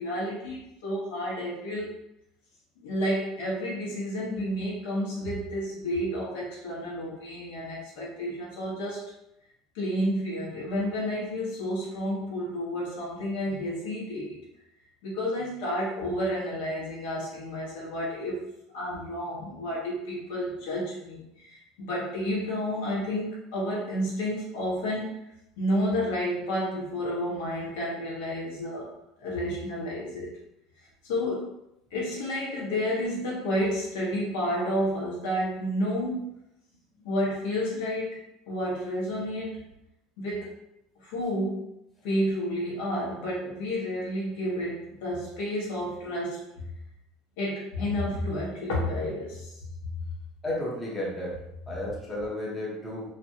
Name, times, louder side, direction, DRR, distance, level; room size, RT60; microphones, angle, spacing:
voice 1, 0.0-1.9 2.8-9.0 9.7-14.4 15.0-18.4 18.7-25.2 25.6-28.9 29.2-30.3 31.1-31.5 31.9-36.3 37.0-39.6 40.2-40.5 41.0-41.6 42.0-46.7 47.4-49.5 50.0-50.1, equal, 85° left, -5 dB, 1.1 m, -30 dB
voice 2, 50.4-51.3 51.7-53.0, left 1 dB, 10° left, -6 dB, 0.6 m, -32 dB
3.0 x 2.5 x 2.7 m, 0.84 s
cardioid pair, 180°, 0 cm